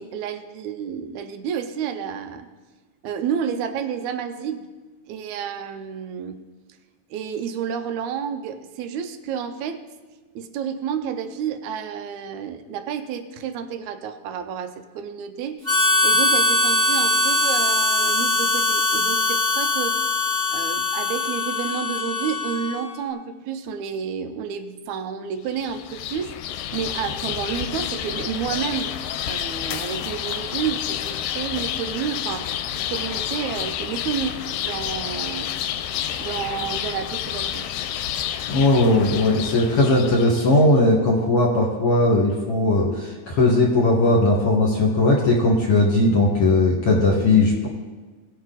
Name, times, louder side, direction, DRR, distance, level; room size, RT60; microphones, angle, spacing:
voice 1, 0.0-2.5 3.0-4.7 5.1-6.4 7.1-9.8 10.4-15.7 16.0-20.1 20.5-26.3 26.7-29.0 29.3-35.5 36.2-37.7, right 7 dB, 80° right, 8 dB, 1.7 m, -30 dB
Harmonica, 15.6-22.9, left 2 dB, 35° left, 0.6 m, -21 dB
sound 1, 25.5-40.6, left 10 dB, 90° left, 2.3 m, -30 dB
voice 2, 38.5-47.7, left 2 dB, 50° left, -3 dB, 2.2 m, -18 dB
18.5 x 6.6 x 4.0 m, 1.3 s
omnidirectional pair, 4.0 m